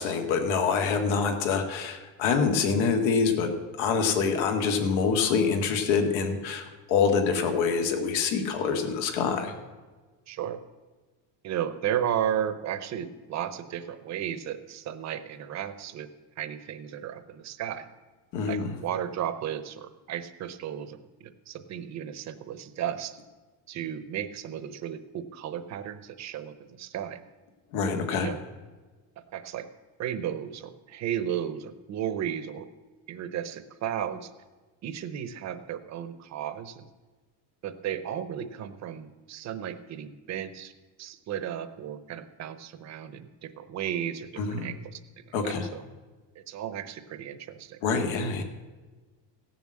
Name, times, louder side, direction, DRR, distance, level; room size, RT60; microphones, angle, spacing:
voice 1, 0.0-9.5 18.3-18.7 27.7-28.3 44.4-44.7 45.3-45.7 47.8-48.4, left 5 dB, 90° left, 5 dB, 2.0 m, -26 dB
voice 2, 10.3-10.6 11.4-16.1 16.4-17.9 18.5-23.2 23.7-27.2 28.2-28.4 29.3-29.7 30.0-32.7 33.1-34.3 34.8-36.9 37.6-40.7 41.0-45.0 45.2-45.8 46.5-47.8, right 10 dB, 40° right, 12 dB, 0.7 m, -34 dB
16.0 x 7.1 x 7.6 m, 1.3 s
cardioid pair, 180°, 45 cm